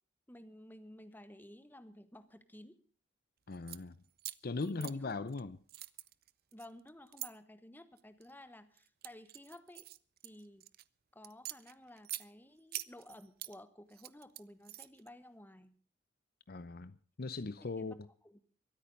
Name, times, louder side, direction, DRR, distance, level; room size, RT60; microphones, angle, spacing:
voice 1, 0.3-2.7 4.6-5.2 6.5-9.8 10.2-10.7 11.1-15.8 17.8-18.0 18.2-18.4, left 1 dB, 10° left, 1.2 m, -54 dB
voice 2, 3.5-4.0 4.4-5.6 16.5-18.1, left 3 dB, 55° left, 0.7 m, -39 dB
sound 1, 3.5-3.8 4.2-5.4 5.7-7.3 8.0-8.3 8.8-10.8 11.2-12.3 12.7-13.5 13.9-15.1, right 16 dB, 55° right, 0.6 m, -45 dB
23.0 x 8.7 x 5.3 m
head